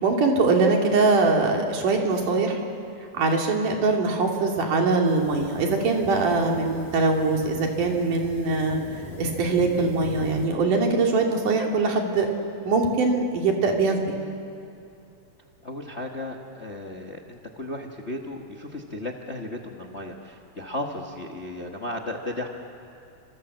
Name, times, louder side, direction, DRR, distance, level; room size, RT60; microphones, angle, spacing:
voice 1, 0.0-2.6 3.1-8.8 9.2-12.3 12.7-14.2, right 3 dB, 80° right, 1 dB, 4.1 m, -22 dB
sound 1, 5.1-10.5, left 3 dB, 90° left, 4.2 m, -41 dB
voice 2, 15.6-22.5, left 1 dB, 35° left, 1 dB, 1.0 m, -35 dB
28.5 x 26.0 x 7.8 m, 2.6 s
omnidirectional pair, 3.6 m